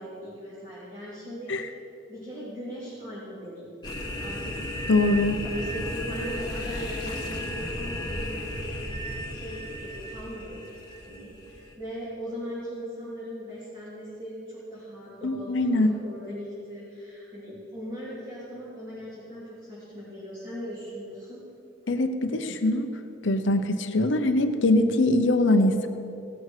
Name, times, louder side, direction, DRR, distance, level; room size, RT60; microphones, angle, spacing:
voice 1, 0.0-1.5 2.1-3.7 4.2-4.5 5.5-10.7 11.1-21.4, equal, 25° right, -11 dB, 3.4 m, -39 dB
sound 1, 3.8-11.7, left 1 dB, 20° left, 1.5 m, -34 dB
voice 2, 4.9-5.4 15.2-15.9 21.9-22.9 23.2-25.9, left 2 dB, 70° left, 8 dB, 0.7 m, -22 dB
17.5 x 6.6 x 6.5 m, 2.9 s
head